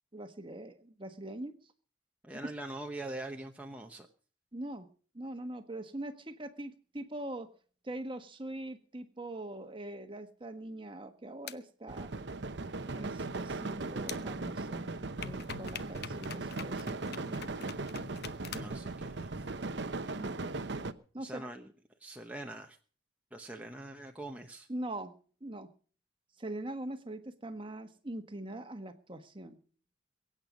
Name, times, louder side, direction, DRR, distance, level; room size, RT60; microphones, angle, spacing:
voice 1, 0.1-1.5 2.4-2.5 4.5-4.9 5.1-7.5 7.8-12.1 12.9-14.9 15.2-17.9 20.1-20.6 21.1-21.5 24.7-25.1 25.4-25.7 26.4-29.6, right 1 dB, 25° right, 8 dB, 1.4 m, -42 dB
voice 2, 2.2-4.1 18.5-19.3 21.2-21.7 22.0-22.8 23.3-24.7, right 1 dB, 10° right, 2 dB, 1.0 m, -43 dB
sound 1, 11.5-11.6 14.1-14.2 15.2-18.8, left 7 dB, 60° left, 0.9 m, -44 dB
sound 2, 11.9-20.9, right 3 dB, 65° right, 0.9 m, -38 dB
23.0 x 9.0 x 5.2 m, 0.42 s
head